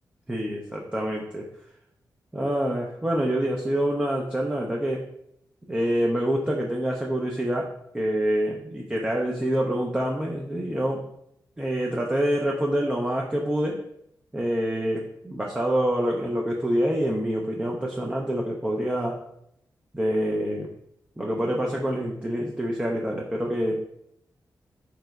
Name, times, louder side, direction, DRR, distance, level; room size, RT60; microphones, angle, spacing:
voice 1, 0.3-1.5 2.3-5.1 5.7-11.0 11.6-13.8 14.3-19.2 19.9-20.7 21.2-23.7, equal, 15° right, -2 dB, 0.4 m, -26 dB
3.2 x 2.9 x 2.3 m, 0.76 s
cardioid pair, 55°, 8 cm